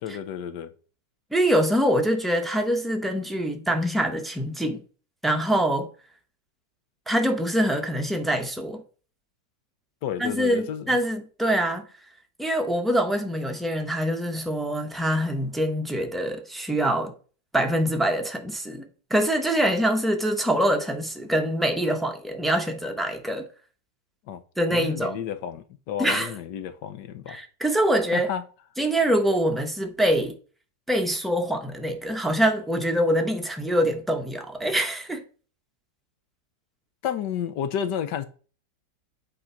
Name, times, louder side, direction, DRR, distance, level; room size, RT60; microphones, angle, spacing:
voice 1, 0.0-0.7 10.0-11.0 24.3-24.4 24.7-27.4 28.1-28.4 37.0-38.3, left 9 dB, 75° left, 1.3 m, -31 dB
voice 2, 1.3-4.8 5.2-5.9 7.1-8.8 10.2-11.9 12.4-17.1 17.5-23.5 24.6-25.2 26.0-26.3 27.3-28.3 28.8-30.4 30.9-35.2, equal, ahead, 0.6 m, -24 dB
8.4 x 3.9 x 5.7 m
omnidirectional pair, 2.0 m